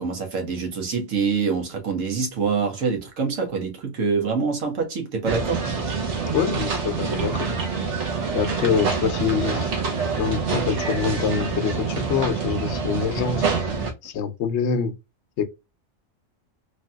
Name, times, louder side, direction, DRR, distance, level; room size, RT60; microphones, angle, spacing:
voice 1, 0.0-5.6, right 5 dB, 85° right, 1.4 m, -25 dB
sound 1, 5.3-13.9, right 5 dB, 65° right, 1.1 m, -26 dB
voice 2, 6.3-7.6 8.3-9.7 10.2-13.5 14.0-14.9 15.4-15.5, left 7 dB, 65° left, 0.8 m, -25 dB
3.2 x 2.7 x 2.2 m
omnidirectional pair, 1.3 m